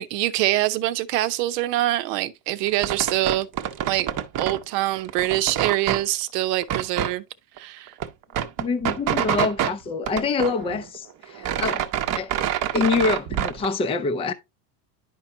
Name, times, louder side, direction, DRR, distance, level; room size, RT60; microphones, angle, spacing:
voice 1, 0.0-3.5 3.9-4.1 4.4-7.2 7.6-7.9, right 15 dB, 75° right, 0.9 m, -24 dB
sound 1, 2.7-4.6 4.9-6.0 6.6-7.1 7.6-7.7 7.9-9.7 10.1-11.0 11.2-13.7, right 10 dB, 40° right, 0.8 m, -26 dB
voice 2, 8.6-12.3 12.7-14.3, left 4 dB, 10° left, 0.5 m, -26 dB
11.0 x 4.6 x 2.7 m
supercardioid pair, 130°, 49 cm